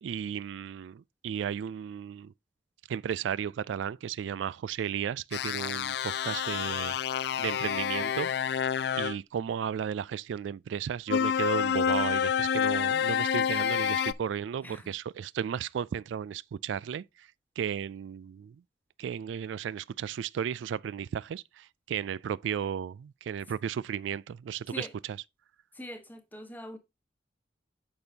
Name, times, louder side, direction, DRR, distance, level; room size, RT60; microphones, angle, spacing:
voice 1, 0.0-2.3 2.9-8.3 9.0-17.3 17.6-18.6 19.0-24.9, right 8 dB, 85° right, 0.3 m, -34 dB
sound 1, 5.3-9.2 11.1-14.1, left 8 dB, 60° left, 0.3 m, -28 dB
voice 2, 14.6-14.9 24.7-24.9 25.7-26.8, left 1 dB, 10° left, 1.1 m, -42 dB
8.6 x 6.2 x 2.8 m
head